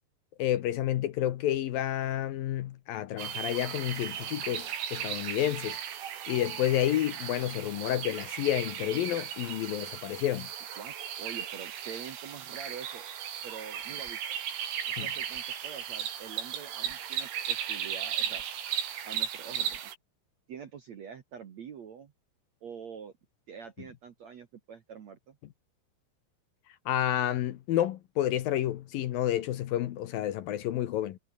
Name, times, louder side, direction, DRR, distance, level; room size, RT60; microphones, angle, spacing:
voice 1, 0.4-5.8 6.3-10.5 15.0-15.1 26.9-31.2, left 12 dB, 70° left, 2.3 m, -30 dB
sound 1, 3.2-20.0, right 9 dB, 85° right, 5.5 m, -36 dB
voice 2, 10.8-13.1 13.4-14.2 14.9-18.4 19.0-19.9 20.5-22.1 22.6-23.1 23.5-25.4, right 7 dB, 60° right, 1.9 m, -45 dB
sound 2, 13.8-14.4 15.1-15.5 16.8-17.1 18.2-18.6 19.5-19.9, left 2 dB, 20° left, 5.6 m, -59 dB
omnidirectional pair, 5.4 m